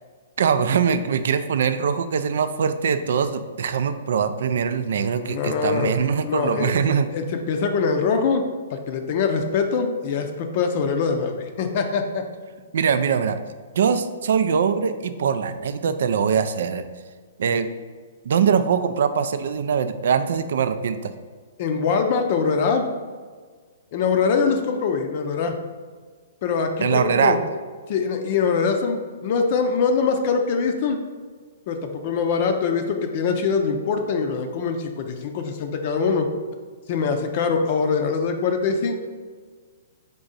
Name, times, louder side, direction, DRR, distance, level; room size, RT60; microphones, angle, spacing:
voice 1, 0.4-7.1 12.7-13.4 13.7-16.8 17.4-17.7 18.2-21.1 26.8-27.4, right 6 dB, 70° right, 11 dB, 0.3 m, -22 dB
voice 2, 5.2-5.9 6.2-8.4 8.7-12.2 21.6-22.9 23.9-25.5 26.4-27.4 27.9-31.0 31.7-36.3 36.9-39.0, left 5 dB, 50° left, 5 dB, 0.5 m, -23 dB
3.7 x 3.5 x 4.0 m, 1.5 s
hypercardioid pair, 130°, 0 cm